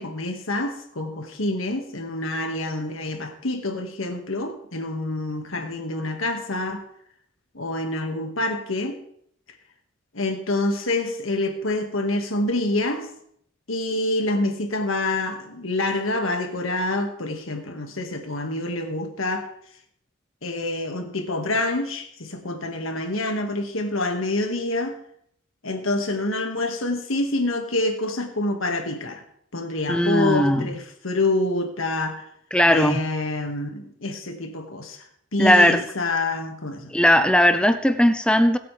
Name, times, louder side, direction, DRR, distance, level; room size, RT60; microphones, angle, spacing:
voice 1, 0.0-6.8 7.5-9.0 10.1-13.1 13.7-19.5 20.4-25.0 25.6-29.2 29.5-32.3 32.7-35.0 35.3-37.0, left 2 dB, 85° left, 5 dB, 1.9 m, -27 dB
voice 2, 29.9-30.7 32.5-33.0 35.4-35.8 36.9-38.6, equal, 5° left, 9 dB, 0.7 m, -18 dB
21.5 x 8.5 x 3.4 m, 0.69 s
head